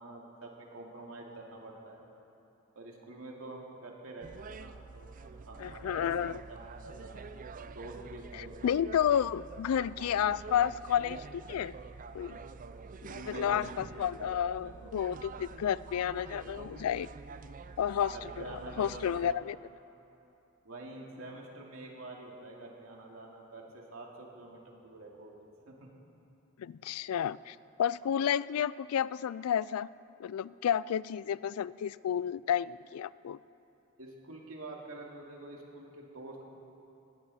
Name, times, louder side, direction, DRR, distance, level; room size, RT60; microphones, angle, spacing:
voice 1, 0.0-2.1 2.7-7.3 7.7-8.7 13.1-13.8 14.6-14.9 18.1-19.3 20.6-25.9 34.0-36.5, right 2 dB, 70° right, -1 dB, 2.5 m, -47 dB
sound 1, 4.2-19.3, right 4 dB, 40° right, 0.4 m, -46 dB
voice 2, 5.6-6.4 8.3-11.7 12.1-12.4 13.0-17.1 17.8-19.6 26.6-29.9 30.2-33.4, left 9 dB, 85° left, 19 dB, 0.3 m, -31 dB
20.0 x 17.0 x 4.2 m, 2.9 s
head